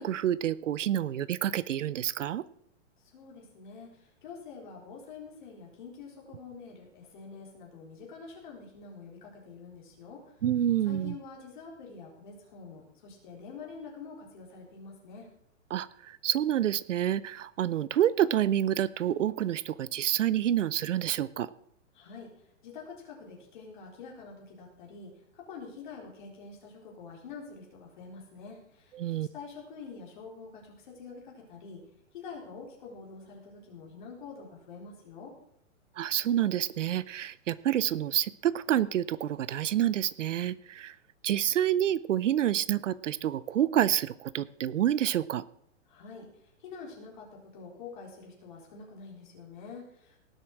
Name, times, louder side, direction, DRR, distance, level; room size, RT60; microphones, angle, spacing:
voice 1, 0.0-2.4 10.4-11.2 15.7-21.5 28.9-29.3 36.0-40.9 41.2-45.4, right 11 dB, 70° right, 20 dB, 0.7 m, -28 dB
voice 2, 3.1-10.2 10.8-15.3 21.9-31.8 32.1-35.3 45.9-46.3 46.6-50.2, left 5 dB, 40° left, -1 dB, 4.1 m, -46 dB
18.0 x 8.1 x 6.0 m, 0.69 s
hypercardioid pair, 180°, 38 cm